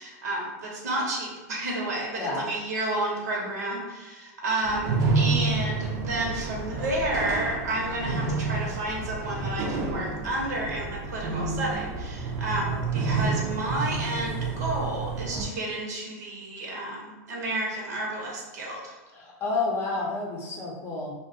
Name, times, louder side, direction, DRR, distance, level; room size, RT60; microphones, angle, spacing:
voice 1, 0.0-18.9, right 1 dB, 85° right, -2 dB, 0.8 m, -31 dB
voice 2, 2.2-2.5 3.4-3.8 12.6-12.8 19.1-21.1, left 3 dB, 25° left, -2 dB, 0.6 m, -31 dB
sound 1, 4.6-15.4, right 4 dB, 35° right, 0.5 m, -29 dB
2.3 x 2.1 x 2.7 m, 1.2 s
supercardioid pair, 130°, 9 cm